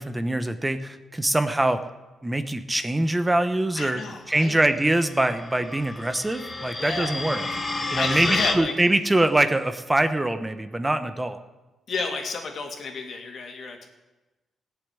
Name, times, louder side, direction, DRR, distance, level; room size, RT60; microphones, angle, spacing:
voice 1, 0.0-1.8 2.2-4.0 4.3-7.4 7.9-11.4, right 1 dB, 15° right, 10 dB, 1.0 m, -23 dB
voice 2, 3.7-4.6 6.8-7.2 7.9-8.7 11.9-13.9, left 4 dB, 65° left, 2 dB, 2.7 m, -31 dB
sound 1, 4.9-8.5, left 2 dB, 25° left, 1.6 m, -31 dB
16.5 x 7.2 x 9.7 m, 1.1 s
cardioid pair, 75°, 0 cm